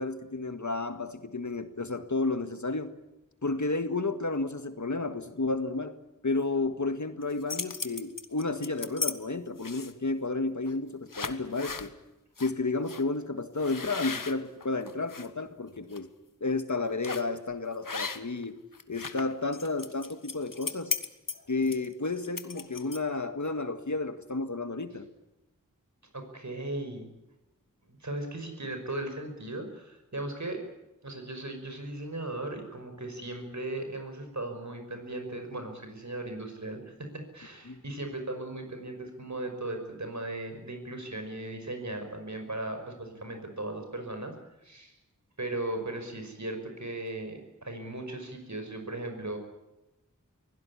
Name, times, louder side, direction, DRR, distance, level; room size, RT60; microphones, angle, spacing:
voice 1, 0.0-2.9 3.4-6.0 6.2-11.9 12.4-16.1 16.4-18.6 18.9-20.9 21.5-25.1 37.7-37.8, left 3 dB, 60° left, 9 dB, 1.8 m, -32 dB
sound 1, 7.2-9.1 9.6-10.1 10.7-10.8 11.1-11.9 12.4-12.5 12.9-13.0 13.6-15.3 15.7-16.0 17.0-17.4 17.8-18.4 18.7-23.2, left 5 dB, 80° left, 1.3 m, -36 dB
voice 2, 26.1-27.1 27.8-30.6 31.0-44.3 44.6-44.9 45.4-49.4, right 2 dB, 60° right, 6 dB, 5.7 m, -37 dB
23.5 x 16.5 x 9.9 m, 0.95 s
wide cardioid pair, 45°, 32 cm